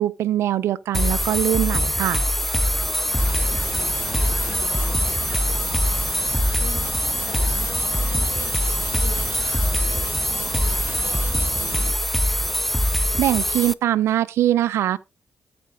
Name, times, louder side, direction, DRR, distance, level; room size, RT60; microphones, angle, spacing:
voice 1, 0.0-2.2 13.2-15.0, right 12 dB, 85° right, 0.6 m, -22 dB
sound 1, 0.9-13.7, left 1 dB, 5° left, 0.6 m, -23 dB
sound 2, 2.0-5.8, left 2 dB, 20° left, 2.2 m, -43 dB
voice 2, 3.0-12.5, left 7 dB, 80° left, 2.6 m, -44 dB
sound 3, 3.2-11.9, right 5 dB, 50° right, 0.8 m, -35 dB
13.5 x 5.2 x 3.6 m
supercardioid pair, 50°, 4 cm